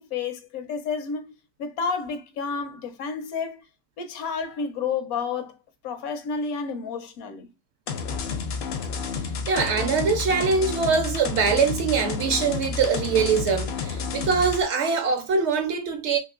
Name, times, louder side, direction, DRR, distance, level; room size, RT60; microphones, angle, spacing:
voice 1, 0.0-1.3 1.6-3.6 4.0-5.6 5.8-7.5, left 5 dB, 85° left, 1.1 m, -30 dB
sound 1, 7.9-14.6, left 5 dB, 65° left, 0.6 m, -30 dB
voice 2, 9.5-16.2, right 5 dB, 65° right, 0.8 m, -23 dB
3.0 x 2.9 x 2.3 m
omnidirectional pair, 1.5 m